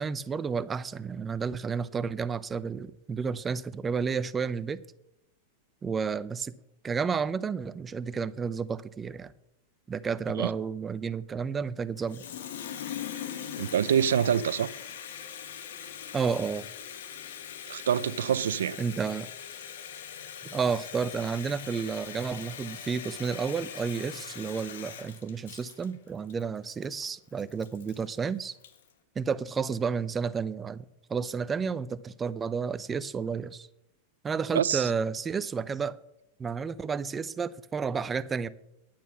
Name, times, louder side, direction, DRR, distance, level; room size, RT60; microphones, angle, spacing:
voice 1, 0.0-4.8 5.8-6.5 6.8-9.3 9.9-12.2 16.1-16.7 18.8-19.3 20.5-28.5 29.2-30.8 31.1-33.7 34.2-36.0 36.4-38.5, right 5 dB, 20° right, 0.6 m, -31 dB
Water tap faucet, 12.0-28.9, left 9 dB, 75° left, 1.5 m, -41 dB
voice 2, 13.6-14.7 17.7-18.8 34.5-34.9, right 9 dB, 90° right, 0.5 m, -26 dB
10.5 x 9.1 x 6.2 m
hypercardioid pair, 125°, 0 cm